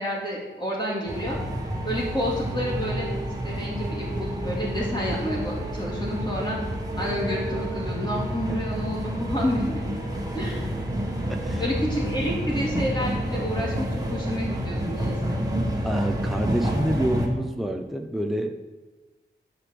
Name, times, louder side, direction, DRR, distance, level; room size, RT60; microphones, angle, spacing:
voice 1, 0.0-1.4 1.8-3.1 3.4-6.6 7.0-9.8 10.3-10.7 11.6-15.4, left 1 dB, 20° left, -4 dB, 2.5 m, -29 dB
sound 1, 1.1-17.3, right 1 dB, 20° right, 1.9 m, -29 dB
voice 2, 11.3-11.6 15.8-18.6, right 1 dB, ahead, 3 dB, 0.8 m, -27 dB
13.0 x 5.2 x 7.8 m, 1.2 s
wide cardioid pair, 130°, 20 cm